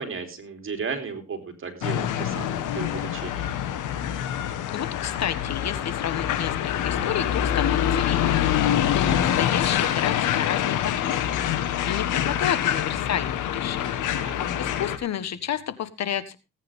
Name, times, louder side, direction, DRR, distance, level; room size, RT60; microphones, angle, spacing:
voice 1, 0.0-3.5 14.2-14.5, right 5 dB, 45° right, 6 dB, 3.8 m, -34 dB
sound 1, 1.8-15.0, left 10 dB, 90° left, 1.7 m, -25 dB
voice 2, 4.7-8.4 8.9-14.0 14.6-16.4, left 9 dB, 60° left, 14 dB, 1.5 m, -30 dB
18.5 x 9.4 x 3.7 m, 0.29 s
cardioid pair, 90°, 30 cm